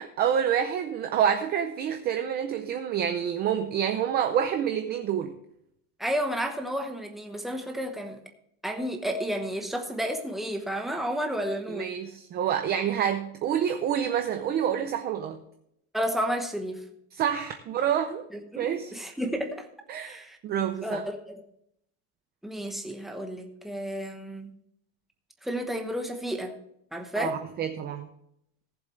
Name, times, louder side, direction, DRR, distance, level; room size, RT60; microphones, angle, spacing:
voice 1, 0.0-5.4 11.7-15.4 17.1-18.3 18.6-18.9 19.9-21.0 27.2-28.1, right 9 dB, 25° right, 6 dB, 0.5 m, -28 dB
voice 2, 6.0-8.2 8.6-11.9 15.9-16.8 18.3-19.7 20.0-20.4 20.8-21.4 22.4-24.5 25.4-26.5 26.9-27.4, equal, ahead, 3 dB, 1.0 m, -31 dB
18.5 x 7.3 x 3.2 m, 0.74 s
cardioid pair, 175°, 40 cm